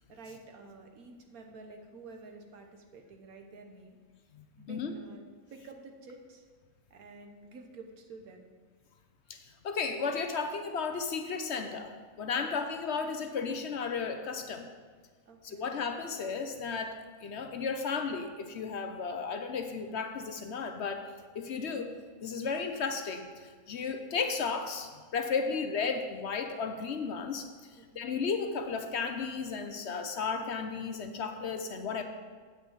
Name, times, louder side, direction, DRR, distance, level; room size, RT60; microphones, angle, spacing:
voice 1, 0.1-4.0 4.6-6.5 6.9-8.5 12.4-12.7 15.3-15.8 22.4-22.7 25.2-25.6 27.8-28.1, right 3 dB, 85° right, 4 dB, 1.6 m, -50 dB
voice 2, 4.3-4.9 9.3-14.7 15.4-21.1 21.3-21.9 22.2-32.0, left 5 dB, 60° left, 6 dB, 0.9 m, -34 dB
8.2 x 6.1 x 7.3 m, 1.5 s
omnidirectional pair, 1.5 m